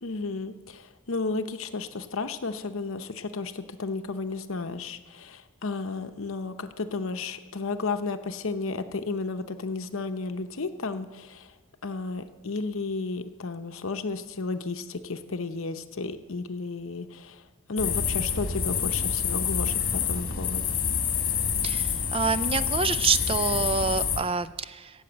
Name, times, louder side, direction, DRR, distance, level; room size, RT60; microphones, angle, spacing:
voice 1, 0.0-11.5 11.8-17.4 17.7-20.8, left 3 dB, 65° left, 9 dB, 0.8 m, -33 dB
sound 1, 17.8-24.2, left 7 dB, 45° left, 1.6 m, -27 dB
voice 2, 21.6-24.9, right 5 dB, 25° right, 13 dB, 0.4 m, -27 dB
16.0 x 8.0 x 7.9 m, 1.4 s
head